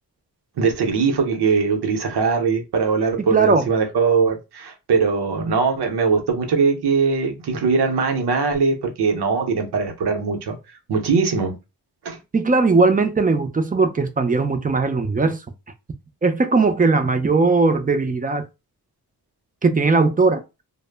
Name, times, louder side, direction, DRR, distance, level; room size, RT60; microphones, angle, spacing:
voice 1, 0.6-10.6 10.9-11.6 12.0-12.2, right 5 dB, 85° right, 0.7 m, -21 dB
voice 2, 3.3-3.6 12.3-15.4 16.2-18.4 19.6-20.4, right 3 dB, 25° right, 0.4 m, -18 dB
2.0 x 2.0 x 3.2 m
cardioid pair, 70°, 38 cm